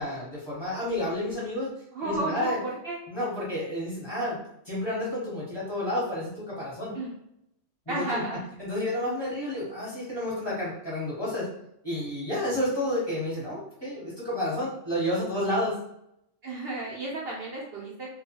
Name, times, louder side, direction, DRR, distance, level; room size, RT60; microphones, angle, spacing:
voice 1, 0.0-1.7 2.0-2.6 3.1-4.4 4.6-6.9 7.9-8.2 8.6-11.5 11.8-15.8, left 1 dB, 20° left, -8 dB, 0.9 m, -30 dB
voice 2, 1.9-3.0 6.9-7.1 7.9-8.5 16.4-18.1, right 2 dB, 60° right, -5 dB, 0.7 m, -33 dB
2.3 x 2.2 x 2.8 m, 0.77 s
omnidirectional pair, 1.3 m